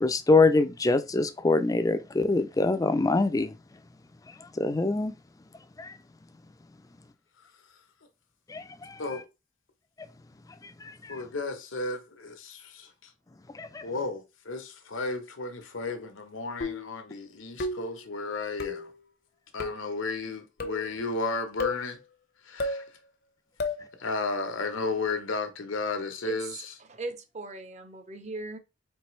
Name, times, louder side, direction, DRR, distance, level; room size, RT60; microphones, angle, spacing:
voice 1, 0.0-3.5 4.4-5.1 5.8-6.0 8.5-9.0 10.8-11.2 13.5-13.9, left 3 dB, 20° left, 0.3 m, -25 dB
voice 2, 11.1-13.1 13.8-18.9 19.5-22.0 22.4-22.8 24.0-26.6, left 3 dB, 85° left, 0.9 m, -33 dB
sound 1, 16.6-17.0 17.6-18.0 18.6-18.9 19.6-19.9 20.6-20.9 21.6-21.9 22.6-22.9 23.6-23.9, left 3 dB, 55° left, 0.7 m, -32 dB
voice 3, 26.2-28.6, right 2 dB, 35° right, 0.6 m, -39 dB
4.4 x 3.3 x 3.1 m
head